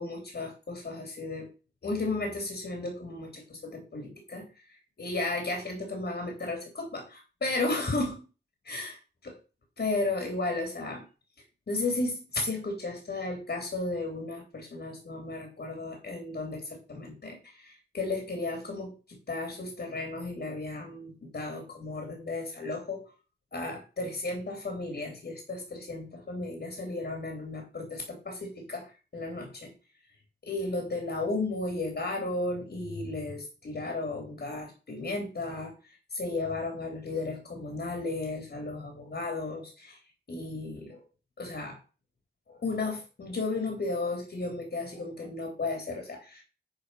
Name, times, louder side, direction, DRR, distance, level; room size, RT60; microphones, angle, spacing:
voice 1, 0.0-1.5 1.8-4.4 5.0-8.2 8.6-9.0 9.8-11.0 11.7-23.0 23.5-29.7 30.4-40.0 40.3-41.0 41.4-41.8 42.5-46.4, left 2 dB, 65° left, 2 dB, 3.3 m, -34 dB
10.0 x 4.8 x 5.7 m, 0.33 s
wide cardioid pair, 75°, 19 cm